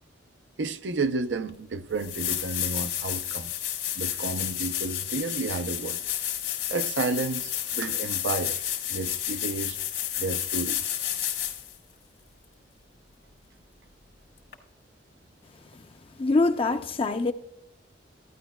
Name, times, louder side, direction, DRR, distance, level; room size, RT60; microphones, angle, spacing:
voice 1, 0.6-3.5 4.0-6.0 6.7-8.6 8.9-9.8 10.2-10.8, right 3 dB, 85° right, 0.5 m, -31 dB
sound 1, 1.5-1.6 2.0-11.7 14.5-14.6, left 11 dB, 75° left, 1.5 m, -31 dB
voice 2, 16.2-17.3, left 3 dB, 30° left, 0.4 m, -24 dB
14.5 x 10.0 x 2.2 m
head